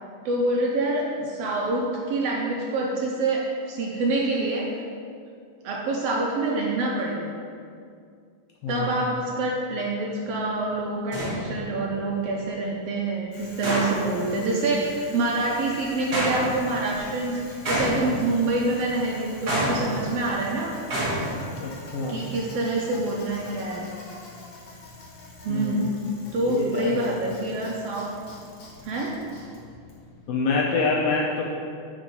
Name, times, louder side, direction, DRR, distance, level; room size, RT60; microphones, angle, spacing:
voice 1, 0.2-4.7 5.6-7.3 8.7-20.7 22.1-23.9 25.4-25.9 26.3-28.1 28.8-29.1, right 2 dB, 90° right, -2 dB, 1.4 m, -26 dB
sound 1, 10.2-10.4 11.1-11.8 13.6-14.2 16.1-16.8 17.6-18.5 19.5-20.3 20.9-21.4, equal, 45° right, 1.5 m, -27 dB
Bicycle, 13.3-30.4, left 2 dB, 55° left, 1.5 m, -45 dB
voice 2, 21.6-22.2 25.5-25.9 26.4-27.1 30.3-31.4, left 4 dB, 80° left, -2 dB, 1.4 m, -26 dB
7.0 x 3.7 x 5.2 m, 2.3 s
omnidirectional pair, 3.5 m